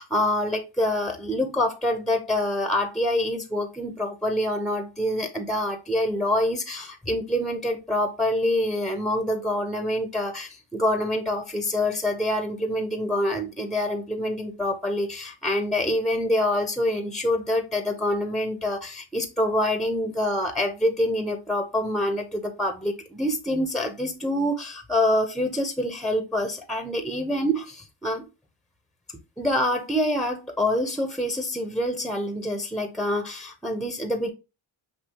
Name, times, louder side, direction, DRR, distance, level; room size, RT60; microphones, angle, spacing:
voice 1, 0.0-28.2 29.4-34.3, left 1 dB, ahead, 0.6 m, -26 dB
6.2 x 2.8 x 2.8 m
cardioid pair, 85°, 48 cm